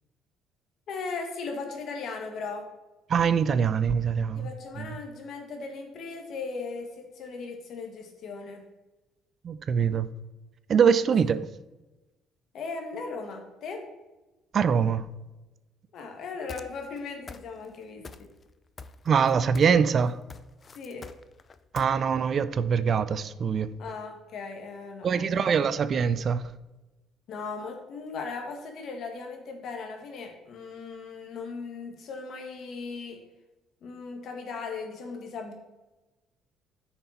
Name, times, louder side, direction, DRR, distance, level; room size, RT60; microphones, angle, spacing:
voice 1, 0.9-2.6 4.4-8.7 12.5-13.8 15.9-18.3 20.8-21.1 23.8-25.5 27.3-33.2 33.8-35.5, left 4 dB, 60° left, 1.9 m, -38 dB
voice 2, 3.1-4.5 4.8-4.9 9.4-10.1 10.7-11.4 14.5-15.1 19.1-20.2 21.7-23.7 25.0-26.4, right 6 dB, 50° right, 0.5 m, -23 dB
sound 1, 16.5-17.0 17.3-17.8 18.0-18.5 18.8-19.8 20.1-21.9, left 4 dB, 35° left, 0.5 m, -44 dB
9.5 x 5.9 x 4.2 m
cardioid pair, 90°, 0 cm